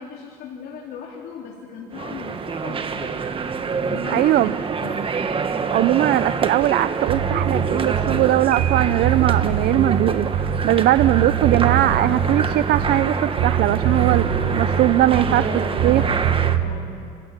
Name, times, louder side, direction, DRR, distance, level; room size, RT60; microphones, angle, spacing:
voice 1, 0.0-3.2 3.8-5.1 13.8-14.9 15.3-17.0, left 4 dB, 70° left, -2 dB, 3.5 m, -37 dB
sound 1, 1.9-16.6, right 5 dB, 30° right, 1.4 m, -26 dB
voice 2, 4.1-4.5 5.7-15.5 15.8-16.0, right 14 dB, 70° right, 14 dB, 0.5 m, -20 dB
Bass guitar, 7.1-8.3 8.6-10.7 11.0-13.1 13.4-15.5 15.8-16.6, right 8 dB, 90° right, 5.1 m, -23 dB
Piano, 8.5-9.5, right 8 dB, 50° right, 6.0 m, -36 dB
28.5 x 16.0 x 8.9 m, 2.4 s
cardioid pair, 110°, 17 cm